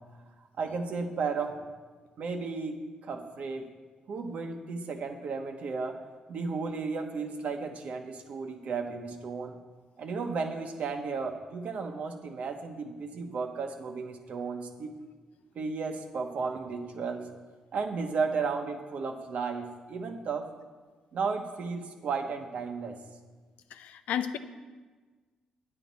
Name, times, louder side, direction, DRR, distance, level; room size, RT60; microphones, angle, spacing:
voice 1, 0.6-1.6 2.2-3.6 4.1-6.0 6.3-9.6 10.0-14.9 15.5-17.3 17.7-20.5 21.1-23.0, right 4 dB, 65° right, 4 dB, 1.1 m, -34 dB
voice 2, 23.7-24.4, left 9 dB, 80° left, 10 dB, 0.5 m, -32 dB
9.9 x 9.1 x 4.1 m, 1.4 s
supercardioid pair, 55°, 3 cm